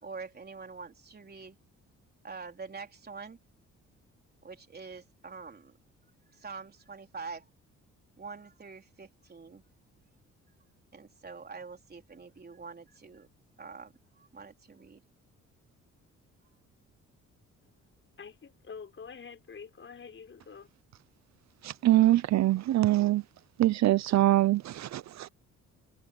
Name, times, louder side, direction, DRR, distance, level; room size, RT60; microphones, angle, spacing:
voice 1, 0.0-1.6 2.2-3.4 4.4-5.7 6.3-7.5 8.2-9.6 10.9-13.3 13.6-15.0, right 4 dB, 30° right, 3.9 m, -45 dB
voice 2, 18.2-20.7, left 6 dB, 40° left, 5.0 m, -46 dB
voice 3, 21.6-23.2 23.6-25.3, right 15 dB, 65° right, 0.7 m, -24 dB
cardioid pair, 90°, 30 cm